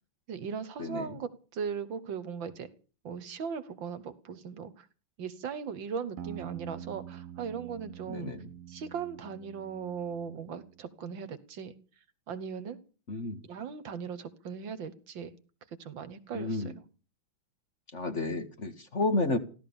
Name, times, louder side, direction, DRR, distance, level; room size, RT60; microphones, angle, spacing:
voice 1, 0.3-2.7 3.0-4.9 5.2-8.3 8.7-11.7 12.3-12.8 13.5-15.3 15.8-16.6, right 6 dB, 65° right, 13 dB, 1.9 m, -38 dB
voice 2, 0.8-1.2 8.1-8.5 13.1-13.4 16.3-16.8 17.9-19.4, left 2 dB, 35° left, 9 dB, 1.9 m, -31 dB
sound 1, 6.2-10.8, right 10 dB, 50° right, 1.1 m, -45 dB
15.5 x 12.5 x 7.0 m, 0.38 s
omnidirectional pair, 2.3 m